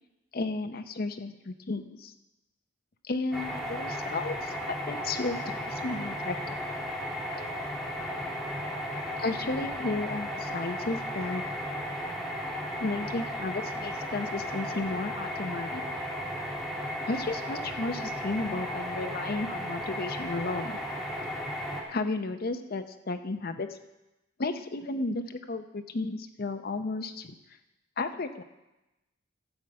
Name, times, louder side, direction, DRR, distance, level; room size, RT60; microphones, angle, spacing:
voice 1, 0.3-2.1 3.1-6.6 8.6-8.8 9.2-11.4 12.8-15.8 16.4-16.6 17.1-20.8 21.9-23.8 24.4-27.3 28.0-28.4, left 3 dB, 45° left, 9 dB, 0.6 m, -33 dB
sound 1, 3.3-21.8, equal, ahead, 1.4 m, -35 dB
12.5 x 5.0 x 7.8 m, 0.98 s
head